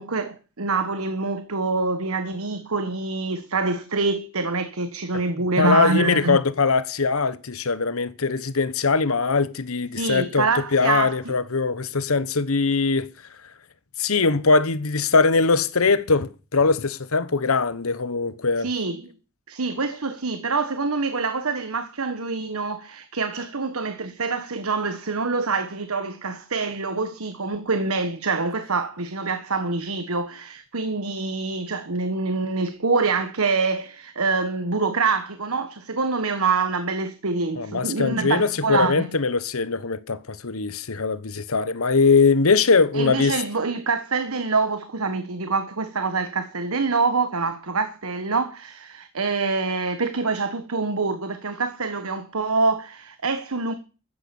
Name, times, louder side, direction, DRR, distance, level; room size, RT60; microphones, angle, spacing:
voice 1, 0.0-6.4 10.0-11.3 18.6-19.1 19.5-39.1 42.9-53.7, right 4 dB, 85° right, 1.4 m, -25 dB
voice 2, 5.6-10.5 10.7-13.1 14.0-18.7 37.6-43.4, left 4 dB, 80° left, 1.1 m, -21 dB
14.0 x 10.5 x 7.0 m
head